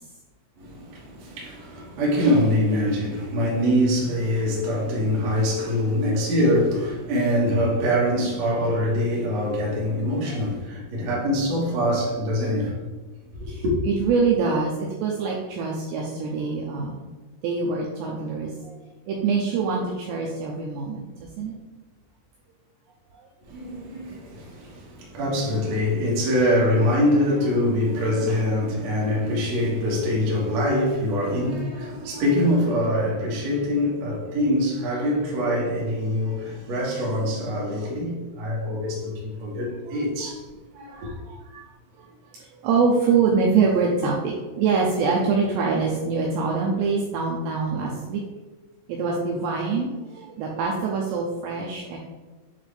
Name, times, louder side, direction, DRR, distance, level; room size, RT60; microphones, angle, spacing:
voice 1, 0.6-12.8 13.4-13.7 23.5-40.4 40.7-41.1, equal, 70° right, 1.6 m, -24 dB
voice 2, 13.5-17.0 17.4-18.8 19.1-21.5 39.5-39.6 39.9-40.3 40.9-41.7 42.0-42.1 42.4-48.2 48.9-52.0, right 5 dB, 90° right, 2.5 m, -25 dB
9.0 x 3.8 x 3.5 m
omnidirectional pair, 5.8 m